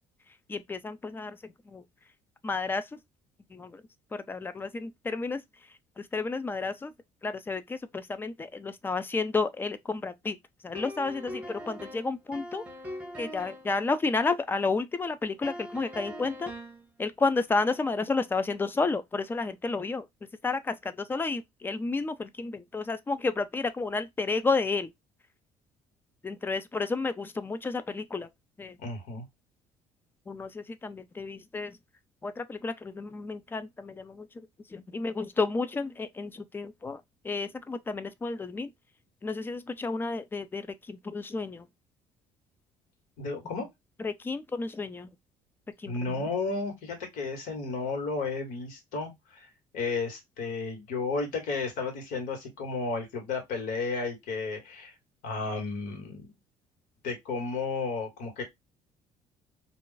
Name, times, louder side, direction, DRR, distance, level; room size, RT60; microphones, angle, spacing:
voice 1, 0.5-1.8 2.4-3.0 3.5-3.8 4.1-5.7 6.0-6.9 7.2-10.4 10.6-12.6 13.2-16.5 17.0-20.1 20.4-24.9 26.2-28.3 28.6-28.8 30.3-31.8 32.2-38.7 39.2-41.7 44.0-45.1 45.8-46.2, left 3 dB, 15° left, 0.3 m, -31 dB
sound 1, 10.8-13.8 15.4-16.9, equal, 10° right, 0.7 m, -41 dB
voice 2, 28.8-29.3 43.2-43.7 45.8-54.9 55.2-56.3 57.0-58.4, left 4 dB, 80° left, 1.4 m, -33 dB
2.4 x 2.3 x 3.8 m
cardioid pair, 135°, 13 cm